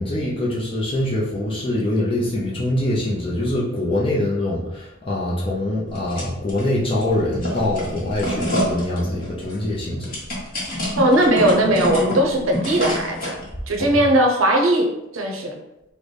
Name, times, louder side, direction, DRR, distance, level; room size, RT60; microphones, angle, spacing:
voice 1, 0.0-10.2 13.8-14.0, left 1 dB, 25° left, -6 dB, 0.5 m, -24 dB
sound 1, 5.9-6.6 7.0-13.4, equal, 45° left, 1.0 m, -27 dB
voice 2, 10.9-13.4 13.7-14.9 15.1-15.5, right 1 dB, 75° right, 2 dB, 0.6 m, -18 dB
3.8 x 2.1 x 3.2 m, 0.90 s
head